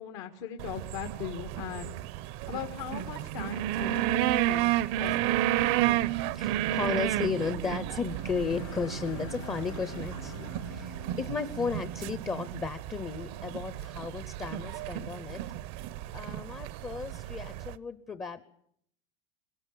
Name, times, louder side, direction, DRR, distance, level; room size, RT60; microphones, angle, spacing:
voice 1, 0.0-1.9 2.5-4.7 5.0-5.5, left 10 dB, 65° left, 6 dB, 1.8 m, -39 dB
sound 1, 0.6-17.7, right 13 dB, 60° right, 0.8 m, -32 dB
sound 2, 5.6-12.6, right 12 dB, 80° right, 1.2 m, -41 dB
voice 2, 6.3-15.4 16.1-18.4, left 5 dB, 20° left, 12 dB, 0.8 m, -34 dB
sound 3, 8.0-11.7, left 9 dB, 90° left, 1.1 m, -47 dB
21.5 x 18.5 x 8.5 m, 0.70 s
supercardioid pair, 145°, 15 cm